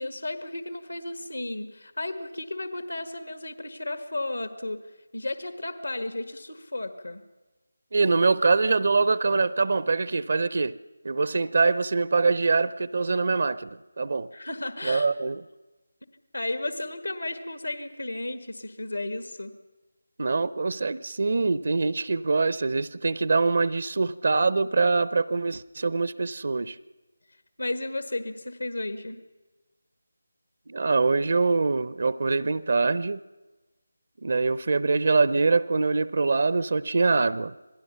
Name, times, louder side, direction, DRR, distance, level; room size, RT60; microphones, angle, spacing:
voice 1, 0.0-4.8 5.1-7.2 14.3-15.1 16.3-19.5 27.6-29.2, left 2 dB, 85° left, 10 dB, 1.7 m, -33 dB
voice 2, 7.9-10.7 11.0-13.7 14.0-14.3 14.8-15.4 20.2-26.8 30.7-33.2 34.2-37.5, right 3 dB, 55° right, 17 dB, 0.6 m, -24 dB
27.0 x 18.5 x 5.7 m, 1.2 s
figure-of-eight pair, 160°, 0 cm